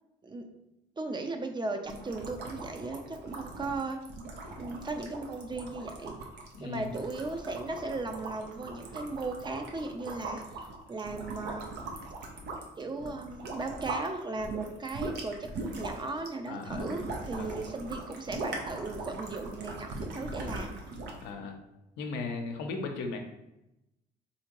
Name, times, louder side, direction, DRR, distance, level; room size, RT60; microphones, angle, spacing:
voice 1, 1.0-4.0 4.5-6.2 6.6-10.5 10.9-11.7 12.8-15.5 15.8-20.8, right 3 dB, 25° right, 5 dB, 0.5 m, -36 dB
sound 1, 1.8-14.1 14.4-21.3, right 2 dB, 75° right, 0.7 m, -40 dB
voice 2, 6.5-6.9 16.5-16.9 17.4-17.6 21.2-21.6 22.0-23.2, left 3 dB, 85° left, 4 dB, 0.6 m, -37 dB
3.5 x 2.8 x 2.9 m, 0.91 s
supercardioid pair, 75°, 18 cm